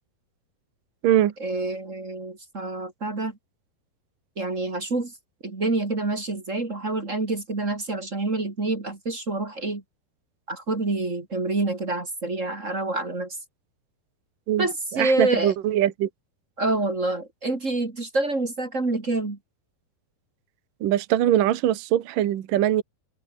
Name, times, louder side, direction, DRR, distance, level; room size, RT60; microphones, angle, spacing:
voice 1, 1.4-3.4 4.4-5.1 5.4-9.8 10.5-13.4 14.6-15.5 16.6-19.4, right 2 dB, 25° right, 2.2 m, -27 dB
voice 2, 14.9-16.1 20.8-22.8, right 12 dB, 60° right, 2.9 m, -22 dB
open air
omnidirectional pair, 4.8 m